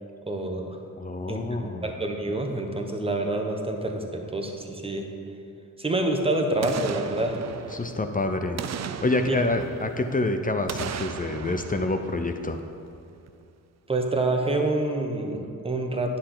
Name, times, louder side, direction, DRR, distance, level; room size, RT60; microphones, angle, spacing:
voice 1, 0.3-0.8 1.3-1.4 1.8-5.0 5.8-7.4 9.3-9.4 13.9-16.2, right 2 dB, 15° right, 3 dB, 1.1 m, -27 dB
voice 2, 0.9-1.9 7.7-8.6 9.0-12.6, left 2 dB, 25° left, 6 dB, 0.5 m, -27 dB
Boom, 6.6-8.1 8.6-10.2 10.7-12.9 13.3-13.4, right 8 dB, 50° right, 0.4 m, -36 dB
10.0 x 6.6 x 3.9 m, 2.5 s
cardioid pair, 75°, 35 cm